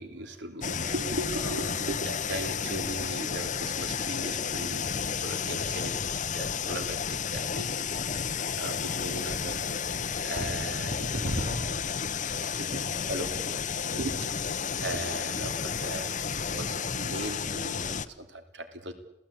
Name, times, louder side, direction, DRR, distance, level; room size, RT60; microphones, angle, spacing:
voice 1, 0.0-9.6 10.1-18.9, right 1 dB, 65° right, 7 dB, 3.0 m, -38 dB
sound 1, 0.6-18.1, left 6 dB, 40° left, 0.9 m, -32 dB
26.5 x 17.0 x 8.7 m, 0.89 s
head